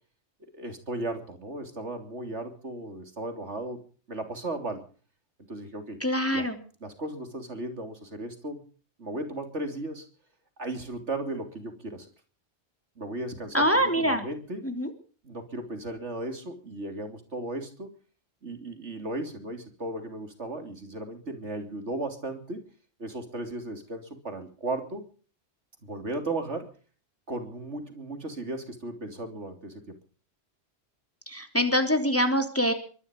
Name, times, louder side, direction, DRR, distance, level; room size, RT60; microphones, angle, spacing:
voice 1, 0.5-3.8 4.1-4.8 5.5-6.0 6.3-6.5 6.8-8.6 9.0-10.1 10.6-12.1 13.0-14.7 15.2-17.9 18.4-22.6 23.0-25.1 25.8-26.7 27.3-29.9, right 2 dB, 75° right, 6 dB, 3.6 m, -36 dB
voice 2, 6.0-6.6 13.5-14.2 14.6-14.9 31.3-32.7, equal, 10° left, 6 dB, 3.1 m, -24 dB
23.5 x 11.5 x 5.4 m, 0.41 s
omnidirectional pair, 1.2 m